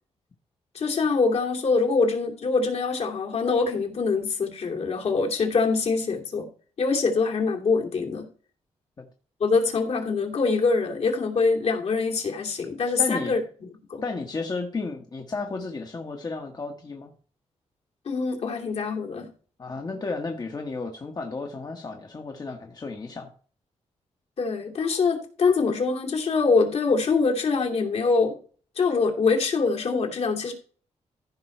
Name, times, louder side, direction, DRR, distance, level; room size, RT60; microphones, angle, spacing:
voice 1, 0.7-6.5 6.8-8.3 9.4-14.0 18.0-19.3 24.4-28.4 28.8-30.5, left 4 dB, 65° left, 2.8 m, -24 dB
voice 2, 13.0-13.4 14.0-17.1 19.6-23.3, left 3 dB, 35° left, 1.3 m, -33 dB
15.0 x 5.4 x 4.5 m
cardioid pair, 100°, 12 cm